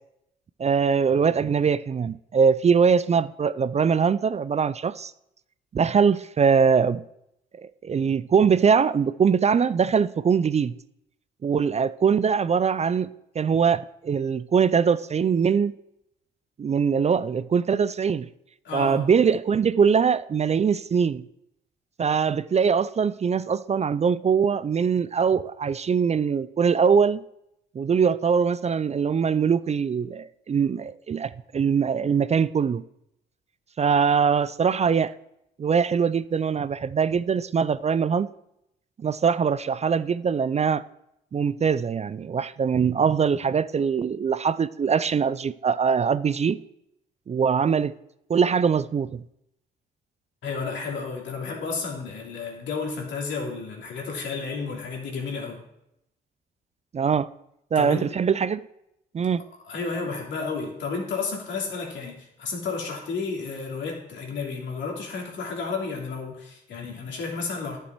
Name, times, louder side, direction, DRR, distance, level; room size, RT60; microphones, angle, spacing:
voice 1, 0.6-5.1 5.7-7.0 7.6-10.7 11.4-15.7 16.6-18.3 18.7-21.2 22.0-27.2 27.8-32.8 33.8-35.1 35.6-38.3 39.0-40.8 41.3-46.6 47.3-47.9 48.3-49.2 56.9-57.3 57.7-58.6 59.1-59.4, right 6 dB, 35° right, 0.4 m, -22 dB
voice 2, 18.6-19.1 50.4-55.6 57.7-58.1 59.6-67.8, left 4 dB, 70° left, 2.9 m, -32 dB
11.0 x 6.8 x 4.6 m
supercardioid pair, 55°, 20 cm